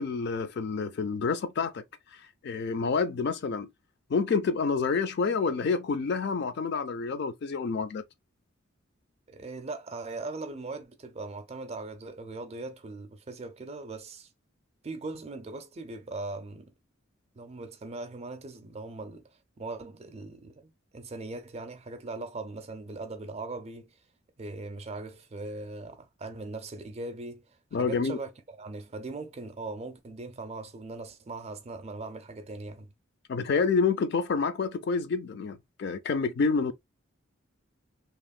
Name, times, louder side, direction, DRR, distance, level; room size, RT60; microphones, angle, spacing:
voice 1, 0.0-1.8 2.4-3.7 4.1-8.0 27.7-28.2 33.3-36.7, left 5 dB, 55° left, 0.4 m, -28 dB
voice 2, 9.3-14.3 14.8-16.7 17.3-19.3 19.6-23.9 24.4-27.4 27.8-32.9, right 3 dB, 30° right, 0.4 m, -40 dB
2.9 x 2.1 x 2.4 m
head